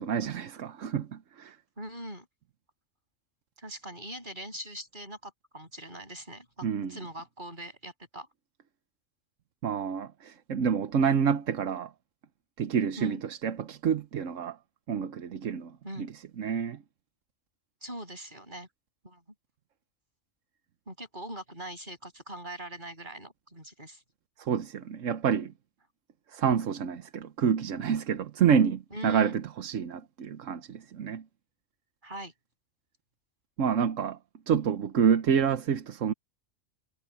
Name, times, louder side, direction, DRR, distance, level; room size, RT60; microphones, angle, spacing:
voice 1, 0.0-1.6 6.6-7.0 9.6-11.9 12.6-14.6 14.9-16.8 24.4-25.5 26.3-31.2 33.6-34.2 34.5-36.1, right 7 dB, 85° right, 1.3 m, -28 dB
voice 2, 1.8-2.3 3.6-8.3 13.0-13.2 15.8-16.1 17.8-18.7 19.0-19.2 20.9-24.0 28.9-29.3 32.0-32.3, right 1 dB, 40° right, 8.0 m, -41 dB
omnidirectional pair, 1.3 m